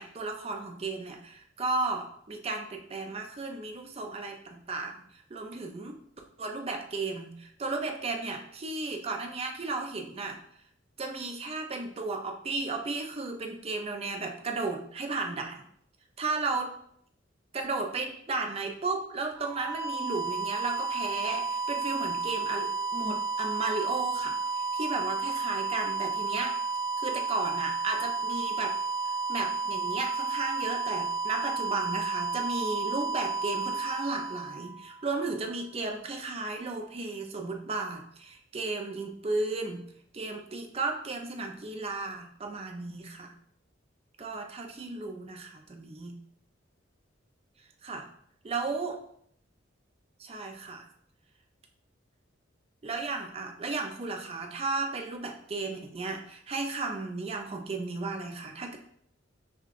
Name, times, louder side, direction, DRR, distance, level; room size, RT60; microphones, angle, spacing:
voice 1, 0.0-6.0 6.4-10.4 11.0-15.6 16.2-16.7 17.5-24.4 24.7-26.6 27.0-28.8 29.3-39.8 40.1-43.3 44.2-46.2 47.8-48.1 48.4-49.0 50.2-50.9 52.8-58.8, right 3 dB, 30° right, 3 dB, 0.4 m, -34 dB
sound 1, 19.4-35.2, right 4 dB, 90° right, 1.3 m, -32 dB
6.3 x 2.3 x 2.5 m, 0.66 s
head